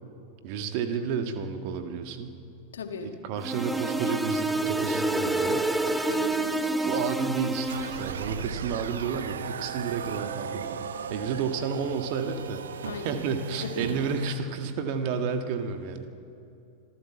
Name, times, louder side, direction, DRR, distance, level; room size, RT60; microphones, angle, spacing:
voice 1, 0.4-2.4 3.0-5.7 6.8-10.8 11.1-16.1, right 6 dB, 45° right, 7 dB, 1.7 m, -31 dB
voice 2, 2.7-3.2 6.1-6.7 12.8-13.2 13.6-13.9, left 5 dB, 65° left, 6 dB, 1.9 m, -37 dB
sound 1, 3.4-8.2, right 2 dB, 5° right, 1.0 m, -28 dB
sound 2, 7.7-14.4, right 7 dB, 65° right, 1.0 m, -36 dB
26.0 x 14.5 x 7.3 m, 2.6 s
figure-of-eight pair, 90°, 0 cm